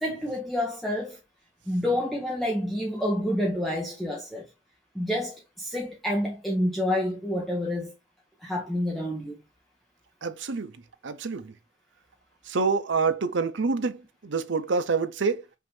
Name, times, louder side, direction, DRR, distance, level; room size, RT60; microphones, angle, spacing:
voice 1, 0.0-1.2 1.7-4.5 4.9-7.9 8.4-9.4, left 1 dB, ahead, 0.8 m, -28 dB
voice 2, 10.2-10.7 11.0-11.5 12.5-14.0 14.2-15.4, right 4 dB, 65° right, 0.6 m, -26 dB
5.5 x 2.7 x 3.2 m
head